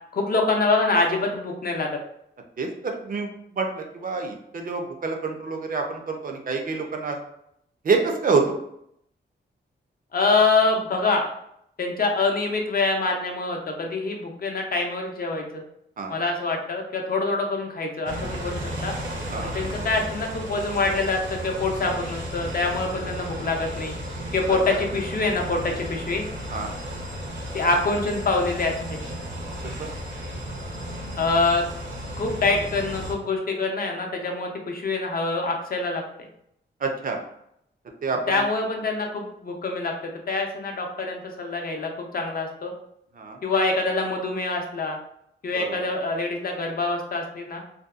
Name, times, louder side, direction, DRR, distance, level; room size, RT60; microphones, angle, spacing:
voice 1, 0.1-1.9 10.1-11.3 11.8-15.6 16.1-18.9 19.4-23.9 24.3-26.2 27.5-29.0 31.2-31.6 32.2-36.3 38.3-42.7 43.4-45.0 45.4-47.6, left 3 dB, 50° left, 2 dB, 0.5 m, -25 dB
voice 2, 2.6-7.2 7.8-8.6 16.0-16.2 19.3-19.5 24.5-24.8 26.5-26.7 29.8-29.9 36.8-37.2 38.0-38.4 43.2-43.4 45.6-45.7, right 4 dB, 45° right, 3 dB, 0.4 m, -27 dB
sound 1, 18.1-33.1, equal, 80° right, 0.7 m, -34 dB
2.7 x 2.2 x 2.3 m, 0.74 s
wide cardioid pair, 100°, 20 cm